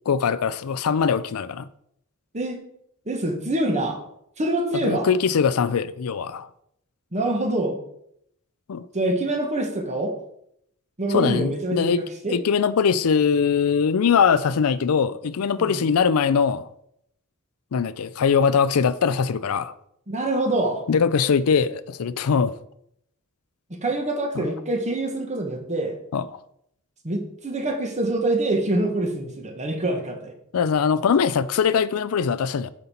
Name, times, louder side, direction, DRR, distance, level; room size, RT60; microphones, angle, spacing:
voice 1, 0.1-1.6 4.8-6.5 8.7-8.9 11.1-12.0 12.3-16.7 17.7-19.7 20.9-22.5 24.4-24.5 26.1-26.4 30.5-32.7, left 6 dB, 75° left, 0.4 m, -21 dB
voice 2, 3.1-4.0 4.4-5.1 7.1-7.8 8.9-10.2 11.0-12.4 15.6-15.9 20.1-20.8 23.7-26.0 27.0-30.3, right 2 dB, 30° right, 1.3 m, -25 dB
8.0 x 5.4 x 4.3 m
head